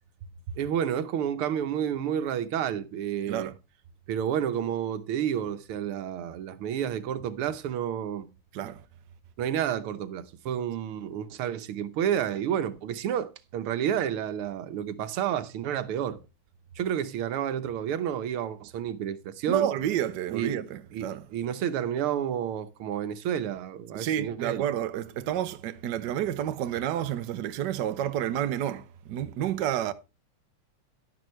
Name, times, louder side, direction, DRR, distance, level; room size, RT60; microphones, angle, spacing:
voice 1, 0.6-3.5 4.1-8.3 9.4-16.2 16.8-19.7 20.3-20.6 20.9-24.6, right 9 dB, 90° right, 1.8 m, -30 dB
voice 2, 19.5-21.2 23.9-29.9, right 10 dB, 65° right, 1.2 m, -30 dB
11.0 x 11.0 x 3.1 m
omnidirectional pair, 2.3 m